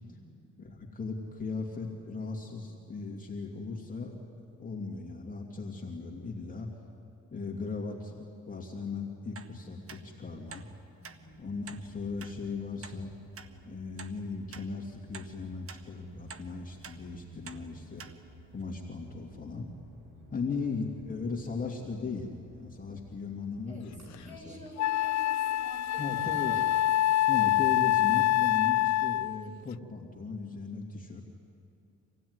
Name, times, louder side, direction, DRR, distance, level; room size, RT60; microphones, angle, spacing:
voice 1, 0.0-0.5 11.0-11.7 17.3-18.0 20.1-20.8 23.7-26.6, left 1 dB, 25° right, -1 dB, 7.9 m, -52 dB
voice 2, 0.6-4.3 4.6-6.7 7.3-8.2 8.5-10.7 11.4-13.1 13.6-18.0 18.5-19.7 20.3-24.6 26.0-26.6 27.3-31.2, left 4 dB, 25° left, -1 dB, 2.7 m, -37 dB
sound 1, 9.4-9.5 9.9-10.0 10.5-10.7 11.0-11.2 11.7-11.8 12.2-12.3 12.8-13.0 13.4-13.5 14.0-14.1 14.5-14.7 15.1-15.3 15.7-15.8 16.3-16.5 16.8-17.0 17.5-17.6 18.0-18.1 18.6-18.7, right 6 dB, 50° right, 1.3 m, -46 dB
sound 2, 11.2-26.7, equal, 65° right, 7.9 m, -56 dB
Wind instrument woodwind instrument, 24.1-24.2 24.8-29.4, left 14 dB, 65° left, 0.5 m, -26 dB
26.0 x 16.5 x 9.7 m, 2.6 s
cardioid pair, 90°, 30 cm